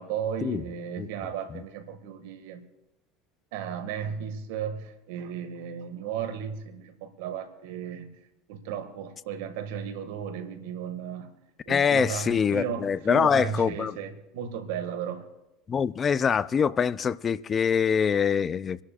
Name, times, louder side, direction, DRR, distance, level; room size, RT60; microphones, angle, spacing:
voice 1, 0.0-2.6 3.5-8.1 8.5-11.3 11.7-15.3, right 8 dB, 80° right, 1.9 m, -35 dB
voice 2, 11.7-13.9 15.7-18.8, left 7 dB, 35° left, 0.4 m, -24 dB
26.5 x 11.5 x 2.5 m
supercardioid pair, 95°, 0 cm